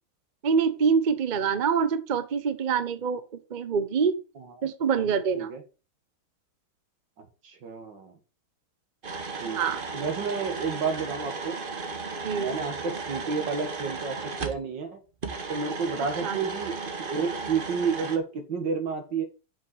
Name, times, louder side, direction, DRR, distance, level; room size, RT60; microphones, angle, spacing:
voice 1, 0.4-3.2 3.5-4.2 4.6-5.5 9.5-9.8 12.2-12.6 16.2-16.4, right 6 dB, 85° right, 0.4 m, -25 dB
voice 2, 7.2-8.2 9.4-9.6 9.9-11.6 12.4-15.0 15.5-16.8 17.1-19.2, right 5 dB, 60° right, 2.4 m, -30 dB
sound 1, 9.0-14.6 15.2-18.2, right 4 dB, 35° right, 1.0 m, -35 dB
6.9 x 5.6 x 6.2 m
omnidirectional pair, 2.3 m